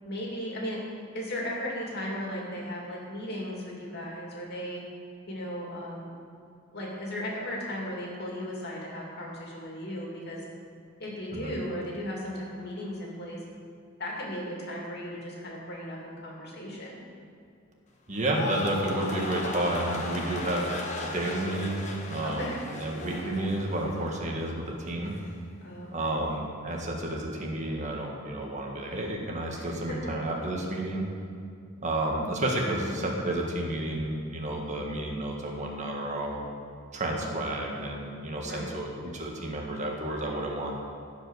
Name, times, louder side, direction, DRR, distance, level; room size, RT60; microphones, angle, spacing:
voice 1, 0.0-0.8 1.1-4.8 5.3-6.1 6.7-10.4 11.0-13.4 14.0-17.0 22.2-22.6 25.6-26.2 29.5-29.7 32.5-32.9 38.4-38.7, equal, 50° left, -3 dB, 2.6 m, -36 dB
sound 1, 18.1-24.5 24.8-25.3, left 2 dB, 35° left, 1.2 m, -37 dB
voice 2, 18.1-25.1 25.9-31.1 31.8-36.4 36.9-40.8, right 1 dB, 35° right, 0 dB, 1.6 m, -31 dB
15.5 x 5.3 x 6.4 m, 2.4 s
head